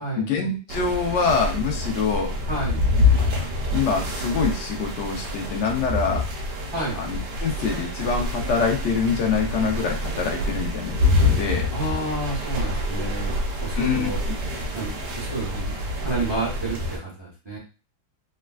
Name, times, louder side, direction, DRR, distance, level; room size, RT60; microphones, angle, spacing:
voice 1, 0.0-2.3 3.3-3.4 3.7-6.2 7.0-11.7 13.8-14.1, left 5 dB, 65° left, 0 dB, 0.7 m, -25 dB
sound 1, 0.7-17.0, left 2 dB, 70° right, 1.2 m, -26 dB
voice 2, 2.5-2.8 6.7-7.0 11.7-14.2 14.7-15.8 16.0-17.6, right 2 dB, 30° right, -5 dB, 0.5 m, -30 dB
3.4 x 2.2 x 2.3 m, 0.33 s
omnidirectional pair, 2.0 m